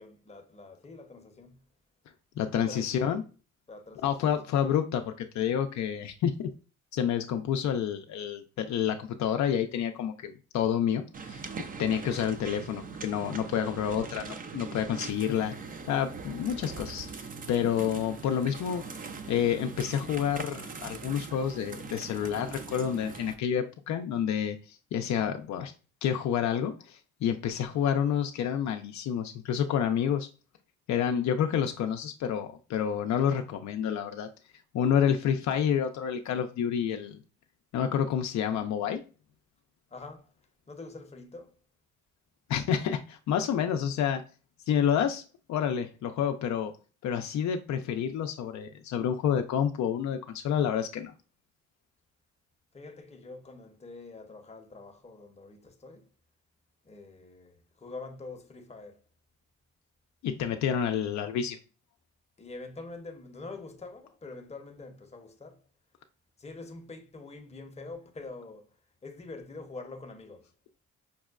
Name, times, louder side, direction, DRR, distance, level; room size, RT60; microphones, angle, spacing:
voice 1, 0.0-1.6 2.7-3.2 3.7-4.4 39.9-40.3 40.7-41.6 52.7-56.1 56.8-59.0 62.4-65.6 66.4-68.8 69.0-70.5, left 3 dB, 20° left, 0.7 m, -45 dB
voice 2, 2.4-3.2 4.0-6.5 6.9-15.5 15.9-18.8 19.3-25.7 26.0-30.3 30.9-34.3 34.7-37.2 37.7-39.0 42.5-44.2 44.7-45.2 45.5-46.7 47.0-51.1 60.2-61.6, left 8 dB, 65° left, 0.4 m, -29 dB
sound 1, 11.1-23.3, right 5 dB, 30° right, 0.4 m, -41 dB
5.3 x 2.1 x 2.3 m
cardioid pair, 90°, 30 cm